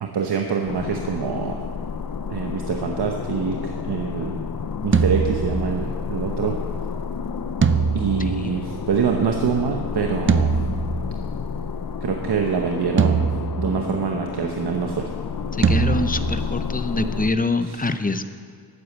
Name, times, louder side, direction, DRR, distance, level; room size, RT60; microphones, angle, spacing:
voice 1, 0.0-1.6 2.3-4.4 4.8-6.6 7.9-10.5 12.0-13.3 13.6-15.1 17.7-17.8, right 6 dB, 85° right, 3 dB, 1.0 m, -25 dB
sound 1, 0.7-17.3, left 6 dB, 60° left, 0.7 m, -30 dB
sound 2, 4.9-6.1 7.6-9.1 10.3-11.5 13.0-14.2 15.6-16.8, right 5 dB, 30° right, 0.5 m, -23 dB
voice 2, 8.2-8.6 15.5-18.2, left 3 dB, 20° left, 9 dB, 0.7 m, -25 dB
12.5 x 8.4 x 8.0 m, 2.1 s
wide cardioid pair, 105°, 39 cm